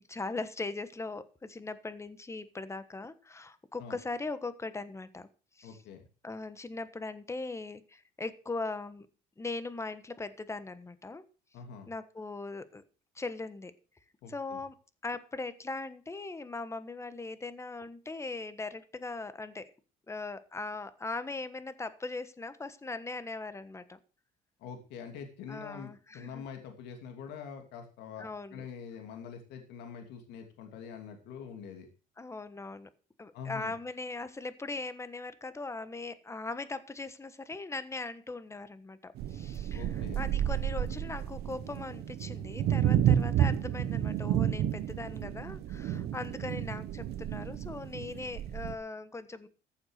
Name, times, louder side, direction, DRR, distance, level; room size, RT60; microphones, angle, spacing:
voice 1, 0.1-5.3 5.6-5.8 6.2-9.1 9.4-11.2 11.9-12.8 13.1-13.7 14.3-19.7 20.1-24.0 25.5-26.5 28.2-28.6 32.2-32.9 33.2-49.5, left 3 dB, 15° left, 13 dB, 1.3 m, -40 dB
voice 2, 5.6-6.1 11.5-11.9 14.2-14.6 24.6-31.9 33.3-33.7 39.7-40.3, left 6 dB, 85° left, 5 dB, 2.8 m, -45 dB
sound 1, 39.2-48.7, right 10 dB, 70° right, 1.0 m, -31 dB
14.5 x 7.2 x 6.5 m, 0.36 s
cardioid pair, 110°, 17 cm